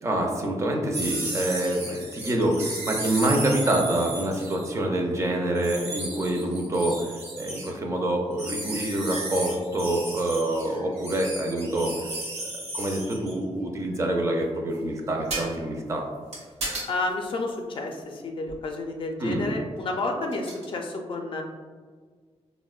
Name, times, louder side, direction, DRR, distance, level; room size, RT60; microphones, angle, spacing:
voice 1, 0.0-11.9 12.7-16.0 19.2-19.6, right 1 dB, 25° right, 0 dB, 0.4 m, -26 dB
sound 1, 0.9-4.7 5.5-7.7 8.4-13.3 15.3-15.5 16.3-16.9 18.5-18.6 20.3-20.7, right 2 dB, 80° right, 0.9 m, -34 dB
voice 2, 16.9-21.4, left 2 dB, 50° left, 3 dB, 0.4 m, -30 dB
4.2 x 2.0 x 2.3 m, 1.5 s
wide cardioid pair, 155°, 11 cm